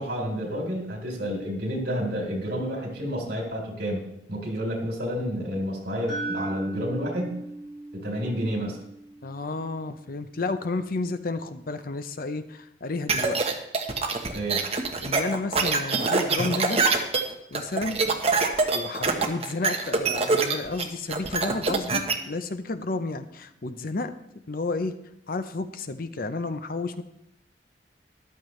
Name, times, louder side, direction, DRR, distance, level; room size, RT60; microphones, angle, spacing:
voice 1, 0.0-7.4 7.9-8.8 14.3-14.6, equal, 60° right, 0 dB, 3.8 m, -30 dB
sound 1, 6.1-10.1, right 2 dB, 5° left, 5.2 m, -37 dB
voice 2, 9.2-13.6 15.0-16.8 17.5-18.0 18.7-24.1 24.5-25.0 25.3-27.0, left 3 dB, 55° left, 10 dB, 0.7 m, -31 dB
sound 2, 13.1-22.1, right 4 dB, 35° right, 1.2 m, -24 dB
14.0 x 12.0 x 3.2 m, 0.81 s
head